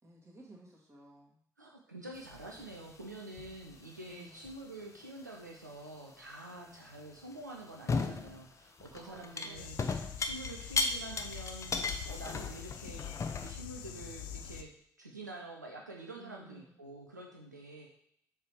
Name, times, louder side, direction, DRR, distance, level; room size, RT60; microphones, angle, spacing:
voice 1, 0.0-1.4 4.1-4.5 6.5-6.8 8.9-9.9 16.2-16.8, right 2 dB, 30° right, -3 dB, 2.2 m, -56 dB
voice 2, 1.6-13.0 13.3-14.7 15.0-17.9, right 2 dB, 90° right, -1 dB, 0.4 m, -47 dB
sound 1, 2.2-3.0 3.4-3.8 4.4-4.6 7.3-7.4 7.9-8.4 8.8-13.5, left 4 dB, 35° left, 0.7 m, -36 dB
sound 2, 9.5-14.6, left 10 dB, 65° left, 0.4 m, -45 dB
7.1 x 3.3 x 4.7 m, 0.70 s
figure-of-eight pair, 40°, 9 cm